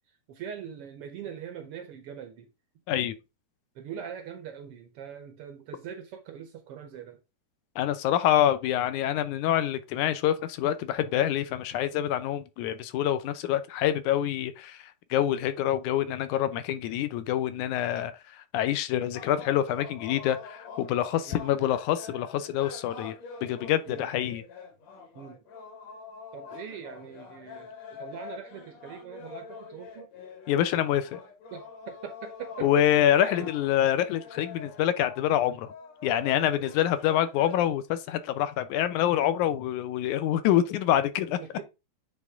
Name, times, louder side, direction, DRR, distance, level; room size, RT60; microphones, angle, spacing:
voice 1, 0.3-2.5 3.7-7.2 15.2-15.3 21.3-21.4 23.9-24.1 25.1-25.4 26.3-30.1 31.5-33.5 41.4-41.7, right 8 dB, 70° right, 1.4 m, -42 dB
voice 2, 7.8-24.4 30.5-31.2 32.6-35.7 36.0-41.4, left 11 dB, 80° left, 2.1 m, -26 dB
sound 1, 19.1-37.6, left 5 dB, 60° left, 2.8 m, -45 dB
9.4 x 3.5 x 3.6 m
omnidirectional pair, 3.6 m